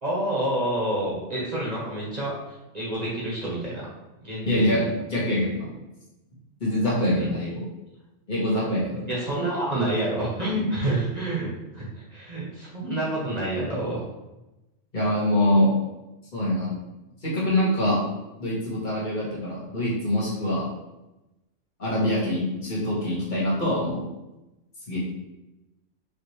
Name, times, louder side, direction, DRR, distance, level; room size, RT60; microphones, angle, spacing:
voice 1, 0.0-2.4 2.7-3.8 4.2-4.8 7.2-7.3 9.1-14.0, right 1 dB, 35° right, -6 dB, 1.1 m, -28 dB
voice 2, 4.4-5.7 6.6-7.6 8.3-9.1 14.9-15.7 16.3-16.7 17.2-18.0 18.4-20.6 21.8-24.0 24.9-25.0, left 1 dB, 40° left, -7 dB, 1.6 m, -24 dB
5.1 x 2.8 x 3.1 m, 0.99 s
omnidirectional pair, 1.3 m